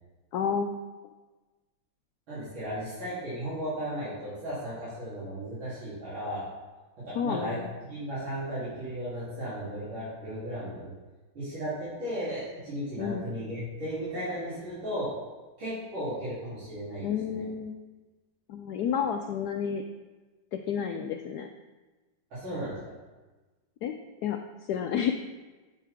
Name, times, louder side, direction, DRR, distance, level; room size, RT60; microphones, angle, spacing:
voice 1, 0.3-0.8 7.1-7.7 13.0-13.3 17.0-17.8 18.5-19.8 20.5-21.5 23.8-23.9 24.2-25.1, left 7 dB, 75° left, 5 dB, 0.9 m, -30 dB
voice 2, 2.3-6.5 7.0-7.6 7.8-10.9 11.3-15.1 15.6-17.4 22.3-22.8, equal, 85° right, -12 dB, 4.0 m, -35 dB
8.3 x 8.1 x 3.5 m, 1.2 s
omnidirectional pair, 2.1 m